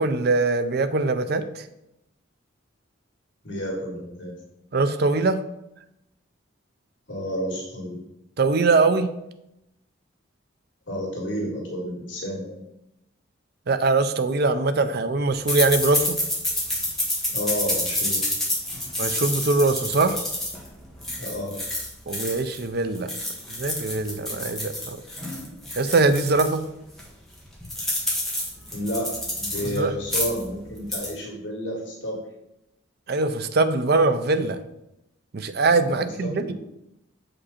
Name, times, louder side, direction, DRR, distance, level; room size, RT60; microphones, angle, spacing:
voice 1, 0.0-1.6 4.7-5.4 8.4-9.1 13.7-16.2 19.0-20.2 22.1-23.1 23.5-25.0 25.7-26.6 29.7-29.9 33.1-34.6 35.3-36.5, right 3 dB, 55° right, 10 dB, 0.5 m, -22 dB
voice 2, 3.4-4.4 7.1-8.0 10.9-12.6 17.3-18.2 21.2-21.6 28.7-32.2 35.9-36.5, equal, 70° left, -3 dB, 2.0 m, -31 dB
sound 1, 15.5-22.6 22.9-26.6 27.0-27.1 27.3-29.8 30.0-30.5 30.8-31.1, left 1 dB, ahead, 1.5 m, -28 dB
7.3 x 5.2 x 4.2 m, 0.85 s
head